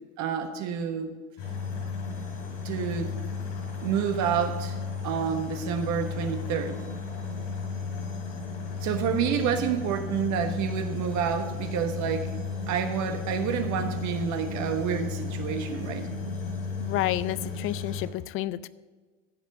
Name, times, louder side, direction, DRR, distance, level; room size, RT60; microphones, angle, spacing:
voice 1, 0.2-1.1 2.6-3.1 3.8-4.8 5.0-6.8 8.8-12.3 12.7-16.1, right 7 dB, 45° right, 6 dB, 1.3 m, -29 dB
sound 1, 1.4-18.1, left 4 dB, 60° left, 4.2 m, -34 dB
voice 2, 16.8-18.7, left 15 dB, 35° left, 17 dB, 0.5 m, -30 dB
15.5 x 5.5 x 6.3 m, 1.4 s
hypercardioid pair, 95°, 39 cm